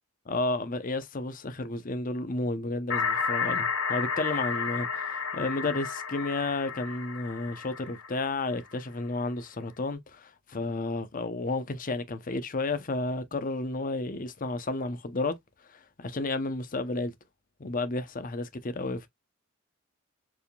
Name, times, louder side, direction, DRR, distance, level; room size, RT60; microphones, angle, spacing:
voice 1, 0.3-15.4 15.7-17.1 17.6-19.1, left 2 dB, 40° left, 0.7 m, -32 dB
sound 1, 2.9-8.6, left 6 dB, 85° left, 0.9 m, -32 dB
4.8 x 3.5 x 2.2 m
head